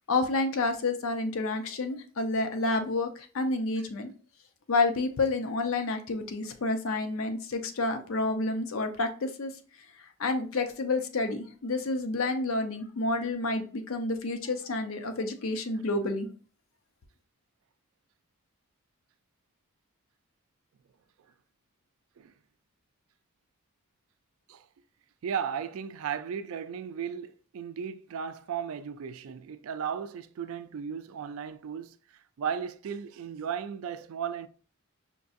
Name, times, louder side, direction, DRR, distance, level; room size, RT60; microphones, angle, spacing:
voice 1, 0.1-4.1 4.7-9.5 10.2-16.3, left 3 dB, 70° left, 0.5 m, -29 dB
voice 2, 25.2-32.0 32.4-34.5, right 7 dB, 75° right, 0.3 m, -35 dB
5.2 x 2.6 x 2.4 m
head